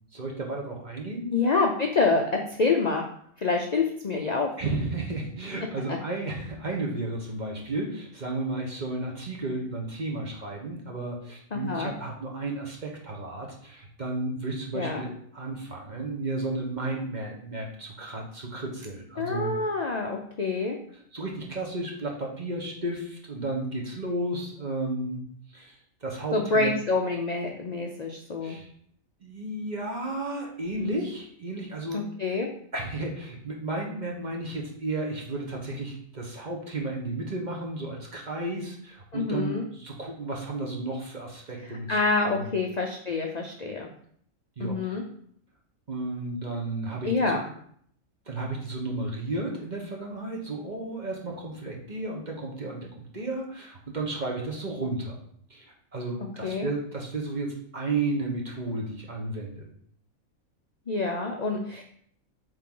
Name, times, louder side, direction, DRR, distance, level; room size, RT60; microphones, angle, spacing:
voice 1, 0.1-1.4 4.6-19.5 21.1-25.2 25.5-25.7 26.0-26.7 28.4-28.7 29.2-32.0 32.7-42.0 42.3-42.5 44.6-44.9 45.9-47.4 48.3-55.2 55.5-59.7, right 2 dB, 35° right, -1 dB, 1.2 m, -33 dB
voice 2, 1.3-3.0 3.4-4.6 5.9-6.0 11.5-11.9 14.7-15.1 19.2-20.8 26.3-28.6 31.9-32.5 39.1-39.7 41.7-43.9 44.6-45.0 47.0-47.5 56.4-56.7 60.9-61.8, left 3 dB, 45° left, 2 dB, 0.5 m, -27 dB
7.7 x 3.7 x 3.8 m, 0.64 s
omnidirectional pair, 1.5 m